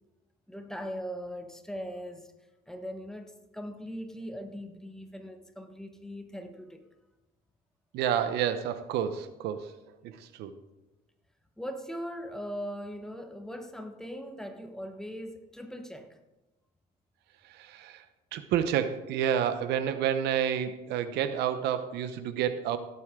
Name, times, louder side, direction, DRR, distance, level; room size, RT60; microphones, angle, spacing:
voice 1, 0.5-2.3 2.7-6.8 11.6-16.2, equal, 5° left, 5 dB, 1.2 m, -40 dB
voice 2, 7.9-9.7 10.0-10.5 17.5-18.0 18.3-22.8, right 9 dB, 85° right, 11 dB, 0.8 m, -29 dB
16.5 x 8.1 x 3.7 m, 1.0 s
cardioid pair, 110°, 17 cm